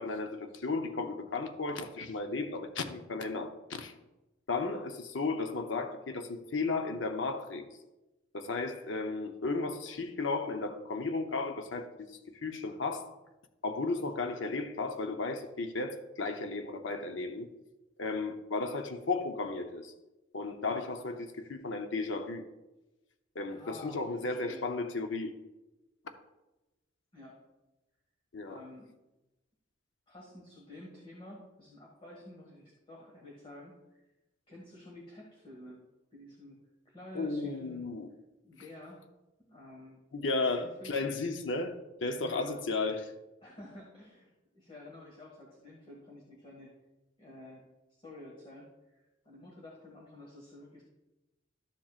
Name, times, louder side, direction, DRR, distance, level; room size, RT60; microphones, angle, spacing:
voice 1, 0.0-3.9 4.5-7.6 8.3-13.1 13.6-17.5 18.0-19.9 20.3-22.4 23.3-25.3 28.3-28.6 37.1-38.1 40.1-43.1, left 3 dB, 70° left, 6 dB, 0.7 m, -34 dB
voice 2, 23.5-24.6 27.1-27.4 28.4-28.9 30.1-34.0 34.5-35.8 36.1-37.9 38.4-39.0 39.4-40.0 40.3-41.1 42.2-42.6 43.4-46.7 47.2-47.6 47.9-50.8, left 1 dB, 30° left, -3 dB, 1.7 m, -50 dB
13.0 x 7.4 x 2.4 m, 1.0 s
head